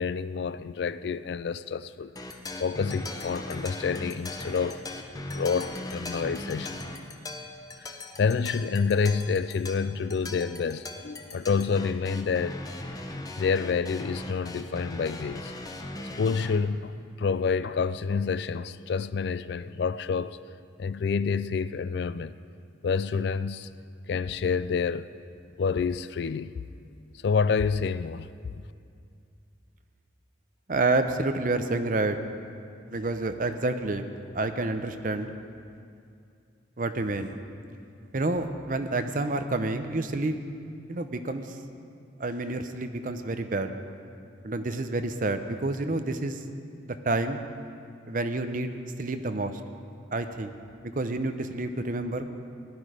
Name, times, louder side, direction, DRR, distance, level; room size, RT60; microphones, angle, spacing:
voice 1, 0.0-2.1 2.6-4.8 5.3-6.8 7.8-12.6 13.4-15.5 16.2-20.4 20.8-22.4 22.8-23.7 24.1-25.1 25.6-26.6 27.2-28.3, left 5 dB, 60° left, 0.3 m, -28 dB
sound 1, 2.2-16.6, left 2 dB, 20° left, 0.7 m, -39 dB
voice 2, 30.7-32.2 32.9-35.3 36.8-37.3 38.1-40.4 40.9-41.6 42.2-43.7 44.4-46.4 46.9-47.4 48.1-49.6 50.1-50.6 50.8-52.3, right 2 dB, 45° right, 0.7 m, -29 dB
16.5 x 11.0 x 5.0 m
head